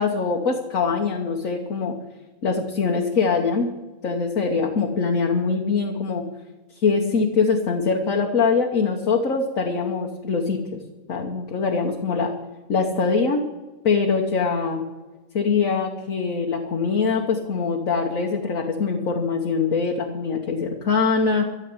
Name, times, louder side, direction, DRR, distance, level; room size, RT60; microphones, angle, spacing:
voice 1, 0.0-1.9 2.4-3.7 4.0-6.2 6.8-10.8 11.1-12.3 12.7-13.4 13.8-14.8 15.3-21.5, left 5 dB, 65° left, 1 dB, 1.6 m, -23 dB
13.5 x 7.4 x 9.6 m, 1.2 s
omnidirectional pair, 1.5 m